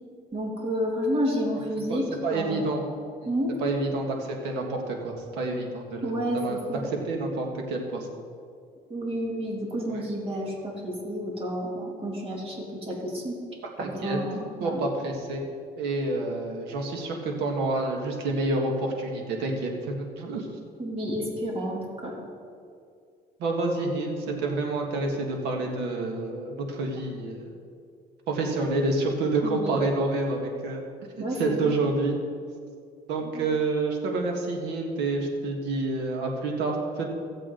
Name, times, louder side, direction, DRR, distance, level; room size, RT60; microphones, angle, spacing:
voice 1, 0.3-2.6 3.3-3.5 6.0-6.9 8.9-13.4 13.8-14.8 20.8-22.1 29.4-29.8 31.2-31.8 33.3-33.5, equal, 35° right, -2 dB, 2.7 m, -30 dB
voice 2, 1.9-2.9 3.6-8.1 13.8-14.2 14.6-15.4 15.8-20.5 23.4-27.5 28.3-30.8 31.2-32.2 33.1-37.1, right 2 dB, 85° right, 1 dB, 1.7 m, -28 dB
16.0 x 7.5 x 3.9 m, 2.3 s
cardioid pair, 110°, 17 cm